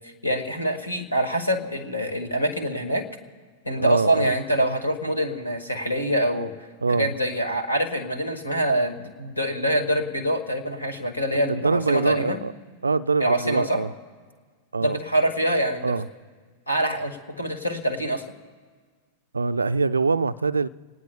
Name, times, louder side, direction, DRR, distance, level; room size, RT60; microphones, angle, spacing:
voice 1, 0.0-3.0 3.6-6.5 6.9-12.4 13.2-13.8 14.8-16.0 16.7-18.2, equal, 80° left, 1.6 m, -25 dB
voice 2, 3.8-4.3 6.8-7.1 11.5-12.5 12.8-13.9 14.7-15.0 15.8-16.1 19.3-20.7, right 4 dB, 75° right, 0.3 m, -23 dB
26.5 x 19.0 x 2.2 m
figure-of-eight pair, 90°, 0 cm